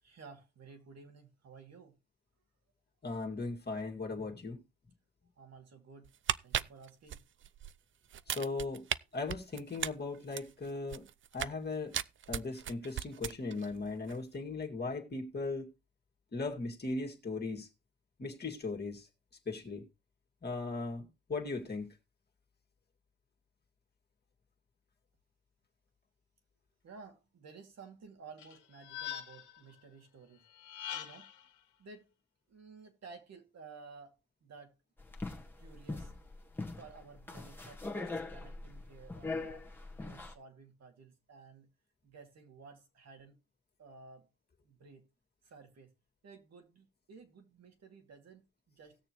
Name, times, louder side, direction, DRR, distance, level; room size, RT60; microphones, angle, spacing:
voice 1, 0.0-2.0 5.4-6.1 6.4-7.2 26.8-30.4 30.9-31.3 31.8-32.1 32.5-34.7 35.6-36.1 36.8-41.7 42.0-43.4 43.8-44.3 44.6-45.0 45.4-45.9 46.2-49.0, right 4 dB, 60° right, 2.6 m, -54 dB
voice 2, 3.0-4.6 8.3-8.8 9.1-11.0 11.3-11.9 12.3-15.7 16.3-17.7 18.2-19.1 19.5-19.8 20.4-21.9, left 3 dB, 35° left, 2.2 m, -38 dB
sound 1, 6.0-7.7 8.1-9.0 9.3-11.6 11.9-13.7 14.0-14.2, right 10 dB, 40° right, 0.4 m, -36 dB
sound 2, 28.4-29.6 30.5-31.4, left 10 dB, 75° left, 1.6 m, -43 dB
sound 3, 35.0-40.3, left 3 dB, 5° left, 1.6 m, -41 dB
18.5 x 6.7 x 3.1 m
cardioid pair, 90°, 30 cm